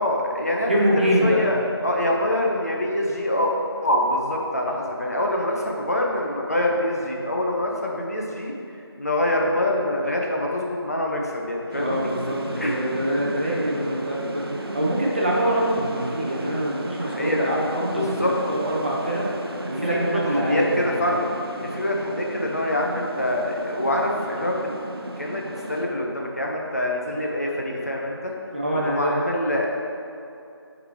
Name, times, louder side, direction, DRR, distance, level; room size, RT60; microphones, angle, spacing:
voice 1, 0.0-0.7 1.2-3.5 3.8-8.5 9.0-12.0 12.6-12.8 17.0-17.5 17.9-18.3 19.6-21.2 21.6-24.7 25.2-28.3 28.9-29.7, left 1 dB, 35° left, -1 dB, 0.6 m, -25 dB
voice 2, 0.7-1.5 11.7-19.3 19.7-20.8 28.5-29.2, right 1 dB, 25° right, -5 dB, 0.6 m, -24 dB
sound 1, 11.7-25.9, right 1 dB, 65° right, 0.7 m, -35 dB
6.6 x 4.0 x 4.5 m, 2.6 s
figure-of-eight pair, 175°, 14 cm